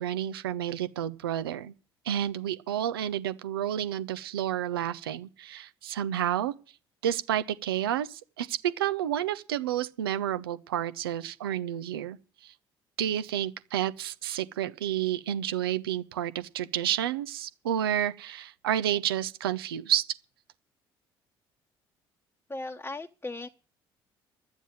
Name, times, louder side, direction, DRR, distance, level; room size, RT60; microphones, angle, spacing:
voice 1, 0.0-1.7 2.0-6.5 7.0-12.2 12.4-12.5 13.0-20.0, right 11 dB, 75° right, 0.6 m, -30 dB
voice 2, 22.5-23.5, left 2 dB, 15° left, 1.0 m, -37 dB
11.5 x 7.4 x 8.8 m
figure-of-eight pair, 50°, 12 cm